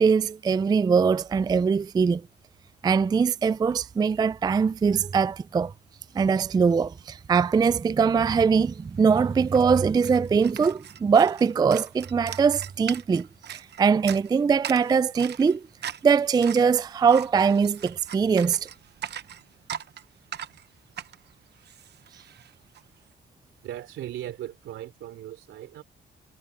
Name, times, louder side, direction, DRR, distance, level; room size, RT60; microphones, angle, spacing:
voice 1, 0.0-2.3 2.8-5.7 6.1-15.7 16.0-18.7, right 6 dB, 20° right, 0.3 m, -22 dB
sound 1, 8.7-8.8 9.0-22.8, right 9 dB, 60° right, 1.0 m, -41 dB
voice 2, 23.6-25.8, right 12 dB, 80° right, 3.5 m, -38 dB
cardioid pair, 90°, 20 cm